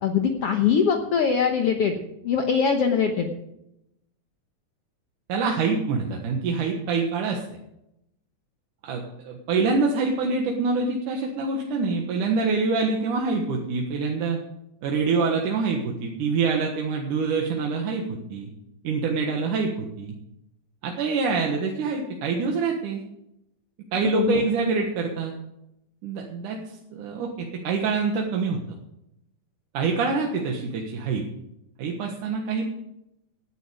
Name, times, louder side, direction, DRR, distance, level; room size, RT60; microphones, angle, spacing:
voice 1, 0.0-2.0 2.2-3.3 24.1-24.5, left 6 dB, 60° left, 4 dB, 1.8 m, -22 dB
voice 2, 5.3-7.4 8.8-14.4 14.8-18.5 18.8-20.1 20.8-23.0 23.9-25.3 26.0-28.6 29.7-31.2 31.8-32.7, right 4 dB, 85° right, 1 dB, 3.0 m, -25 dB
17.5 x 10.0 x 5.0 m, 0.83 s
omnidirectional pair, 3.5 m